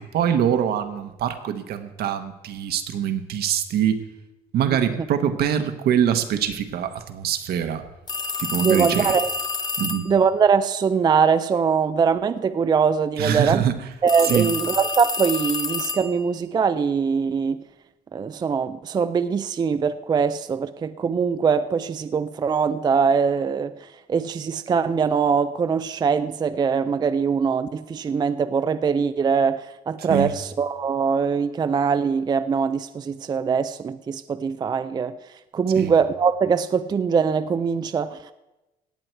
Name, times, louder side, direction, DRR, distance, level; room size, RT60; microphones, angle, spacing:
voice 1, 0.0-4.0 4.5-7.8 8.4-9.1 9.8-10.0 13.2-13.8 14.2-14.5 30.1-30.3 35.7-35.9, right 9 dB, 70° right, 1.1 m, -24 dB
sound 1, 8.1-10.2 14.1-16.3, left 3 dB, 25° left, 0.8 m, -28 dB
voice 2, 8.6-9.3 10.1-13.6 14.0-17.6 18.1-35.2 35.5-38.3, right 6 dB, 25° right, 0.4 m, -22 dB
17.5 x 7.7 x 4.5 m
cardioid pair, 110°, 17 cm